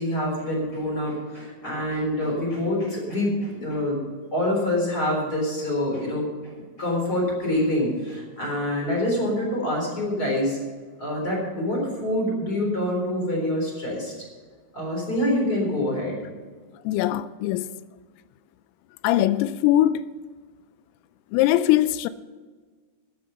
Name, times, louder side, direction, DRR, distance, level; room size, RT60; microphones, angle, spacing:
voice 1, 0.0-4.0 4.3-6.5 6.8-10.6 11.0-14.1 14.7-16.2, left 1 dB, 20° left, 3.6 m, -26 dB
voice 2, 16.8-17.7 19.0-20.0 21.3-22.1, left 13 dB, 90° left, 3.2 m, -21 dB
13.0 x 9.6 x 5.6 m
omnidirectional pair, 5.8 m